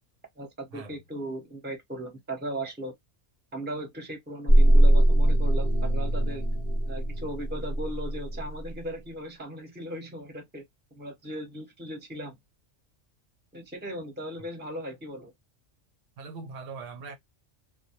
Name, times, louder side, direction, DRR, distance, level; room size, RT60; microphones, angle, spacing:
voice 1, 0.4-2.9 3.5-6.4 6.9-10.6 10.9-12.4 13.5-15.3, right 1 dB, 10° right, 0.7 m, -37 dB
sound 1, 4.5-8.7, right 1 dB, 30° left, 0.7 m, -22 dB
voice 2, 16.2-17.2, right 4 dB, 80° right, 1.0 m, -41 dB
2.1 x 2.0 x 2.9 m
omnidirectional pair, 1.3 m